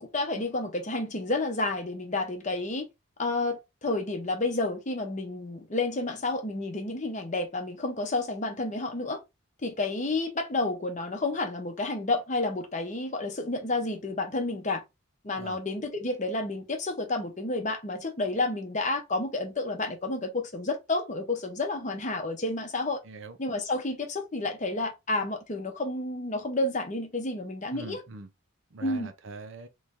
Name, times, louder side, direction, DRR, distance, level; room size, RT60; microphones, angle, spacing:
voice 1, 0.0-2.9 3.2-9.2 9.6-14.8 15.2-23.0 23.4-28.0 28.8-29.1, left 2 dB, 35° left, 0.8 m, -30 dB
voice 2, 23.0-23.4 27.7-28.3 28.7-29.7, right 3 dB, 55° right, 0.6 m, -42 dB
3.1 x 2.7 x 3.5 m
head